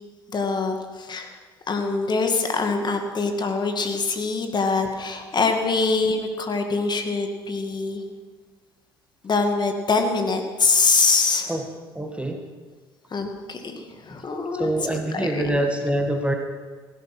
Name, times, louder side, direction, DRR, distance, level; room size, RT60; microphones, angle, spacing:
voice 1, 0.3-1.3 1.7-8.0 9.2-11.5 13.1-15.6, left 4 dB, 35° left, 5 dB, 2.3 m, -24 dB
voice 2, 12.0-12.4 14.5-16.3, right 1 dB, 10° right, 4 dB, 1.9 m, -25 dB
16.5 x 11.5 x 6.2 m, 1.4 s
hypercardioid pair, 55°, 13 cm